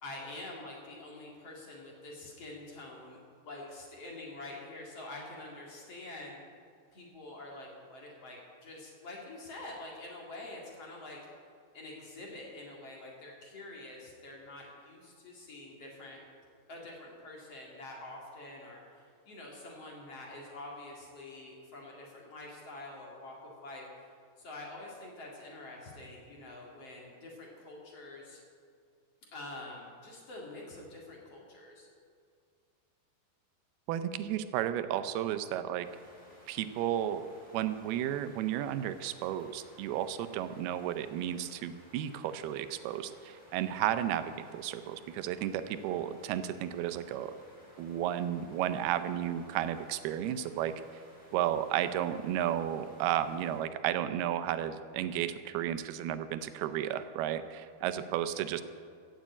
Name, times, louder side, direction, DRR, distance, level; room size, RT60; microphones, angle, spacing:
voice 1, 0.0-6.4 6.9-11.2 11.7-16.2 16.7-23.8 24.4-28.4 29.3-31.9 58.1-58.4, left 2 dB, 45° left, -2 dB, 2.8 m, -46 dB
voice 2, 33.9-35.9 36.5-37.2 37.5-47.3 47.8-50.7 51.3-58.6, right 11 dB, 90° right, 11 dB, 2.6 m, -33 dB
sound 1, 35.8-53.6, equal, ahead, 4.2 m, -58 dB
15.5 x 7.7 x 8.3 m, 2.2 s
omnidirectional pair, 4.4 m